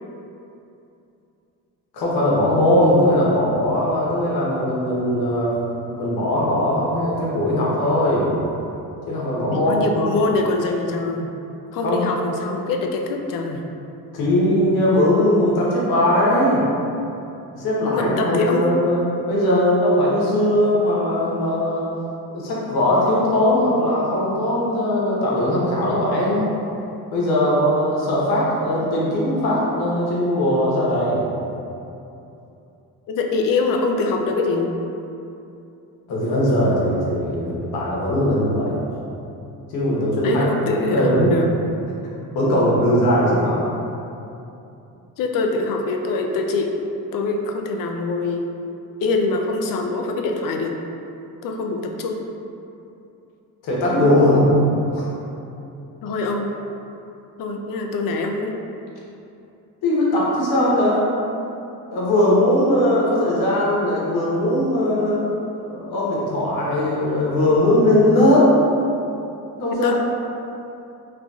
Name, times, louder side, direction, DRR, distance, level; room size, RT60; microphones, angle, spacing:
voice 1, 1.9-5.5 6.0-8.3 9.1-9.8 11.8-12.1 14.1-16.6 17.5-19.0 19.3-21.9 22.3-26.5 27.1-31.2 36.1-38.8 39.7-40.5 40.8-41.3 42.3-43.6 53.6-54.5 54.9-55.0 59.8-61.0 61.9-65.2 65.6-68.5 69.6-69.9, left 1 dB, 80° left, -6 dB, 1.1 m, -19 dB
voice 2, 9.5-11.3 11.7-13.6 17.9-18.7 33.1-34.7 40.2-41.5 45.2-46.7 47.1-48.5 49.0-50.8 51.4-52.2 56.0-56.5 57.4-58.5 69.7-69.9, left 3 dB, 60° left, 3 dB, 0.5 m, -24 dB
3.8 x 3.2 x 2.3 m, 2.8 s
cardioid pair, 110°, 37 cm